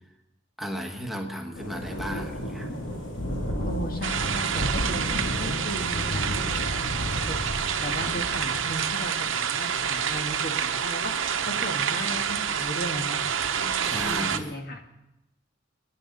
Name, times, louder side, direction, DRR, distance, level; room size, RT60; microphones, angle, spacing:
voice 1, 0.6-2.7 13.8-14.5, equal, ahead, 2 dB, 1.2 m, -34 dB
sound 1, 1.5-14.3, equal, 85° left, 2.5 m, -34 dB
voice 2, 3.6-11.1 11.5-13.2 13.5-14.8, equal, 50° left, 3 dB, 1.5 m, -36 dB
sound 2, 4.0-14.4, right 7 dB, 85° right, 0.8 m, -28 dB
24.5 x 10.0 x 3.9 m, 0.92 s
head